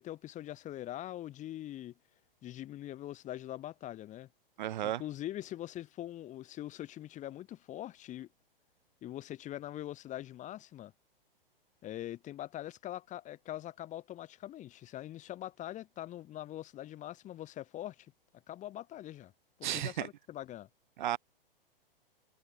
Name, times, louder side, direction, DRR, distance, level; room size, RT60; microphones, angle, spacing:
voice 1, 0.0-1.9 2.4-4.3 4.8-8.3 9.0-10.9 11.8-18.1 18.5-19.3 19.6-20.7, left 13 dB, 25° left, 7.9 m, -43 dB
voice 2, 4.6-5.0 19.6-20.1 21.0-21.2, right 12 dB, 55° right, 2.0 m, -33 dB
figure-of-eight pair, 110°, 29 cm